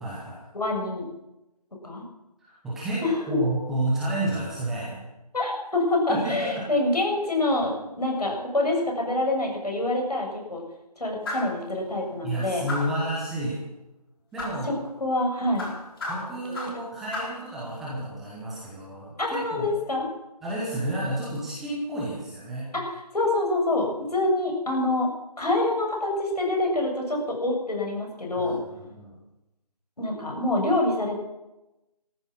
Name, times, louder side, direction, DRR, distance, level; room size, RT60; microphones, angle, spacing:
voice 1, 0.0-0.4 2.4-5.0 6.1-6.7 12.2-13.6 14.3-14.7 16.1-19.6 20.4-22.7 28.4-29.1, right 1 dB, ahead, -8 dB, 0.8 m, -31 dB
voice 2, 0.5-1.1 1.8-2.0 3.0-3.4 5.3-10.6 11.0-12.7 14.6-14.7 15.0-15.7 19.2-20.1 22.7-25.1 25.4-28.6 30.0-31.2, left 2 dB, 70° left, 0 dB, 6.7 m, -26 dB
sound 1, 11.2-11.6 12.7-13.1 14.4-14.6 15.6-16.8 17.1-17.4, left 2 dB, 35° left, 4.3 m, -33 dB
15.0 x 14.0 x 6.2 m, 0.97 s
figure-of-eight pair, 160°, 21 cm